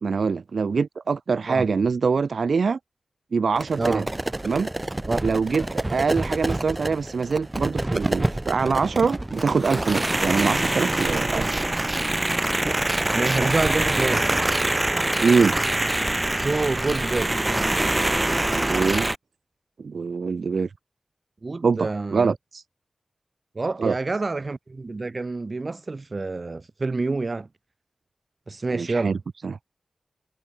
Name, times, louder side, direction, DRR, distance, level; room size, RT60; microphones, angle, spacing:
voice 1, 0.0-2.8 3.3-4.1 4.4-4.7 5.2-11.4 15.2-15.5 18.5-19.1 19.8-20.7 21.6-22.6 23.8-24.0 28.7-29.2 29.4-29.6, right 5 dB, 85° right, 0.5 m, -24 dB
sound 1, 3.6-19.2, right 1 dB, 25° right, 0.9 m, -25 dB
voice 2, 13.1-14.3 16.3-17.4 21.4-22.3 23.5-27.5 28.5-29.2, right 3 dB, 50° right, 1.6 m, -27 dB
wide cardioid pair, 75°, 0 cm